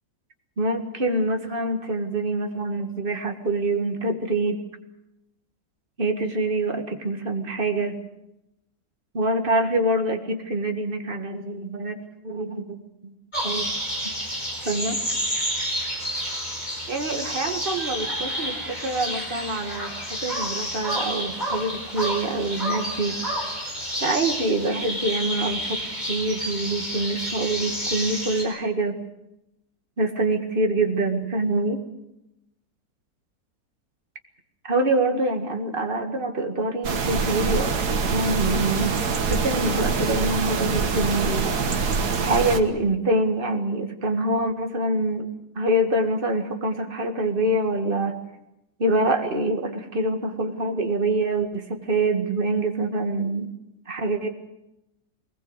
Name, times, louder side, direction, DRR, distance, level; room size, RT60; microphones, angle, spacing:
voice 1, 0.6-4.6 6.0-8.0 9.1-12.0 12.2-13.1 13.4-13.7 14.6-15.0 16.9-23.5 24.0-25.8 26.1-29.0 30.0-31.8 34.6-37.7 38.1-39.0 39.3-41.5 42.2-45.3 45.6-48.2 48.8-53.5 53.9-54.3, right 2 dB, 35° right, 5 dB, 2.1 m, -25 dB
sound 1, 13.3-28.4, equal, 25° left, 4.9 m, -30 dB
sound 2, 36.8-42.6, right 5 dB, 80° right, 2.1 m, -24 dB
22.0 x 20.0 x 8.1 m, 0.89 s
omnidirectional pair, 1.7 m